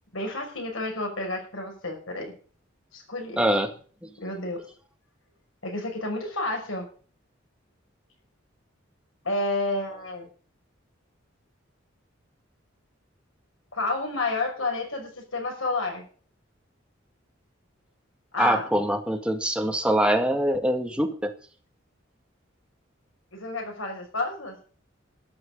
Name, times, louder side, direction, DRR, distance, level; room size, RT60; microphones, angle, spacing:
voice 1, 0.1-2.4 2.9-3.4 4.2-4.6 5.6-6.9 9.2-10.3 13.7-16.0 18.3-18.7 23.3-24.6, left 2 dB, 90° left, 2 dB, 5.9 m, -30 dB
voice 2, 3.4-3.7 18.4-21.3, right 1 dB, 5° right, 5 dB, 1.8 m, -24 dB
13.0 x 6.5 x 9.4 m, 0.43 s
head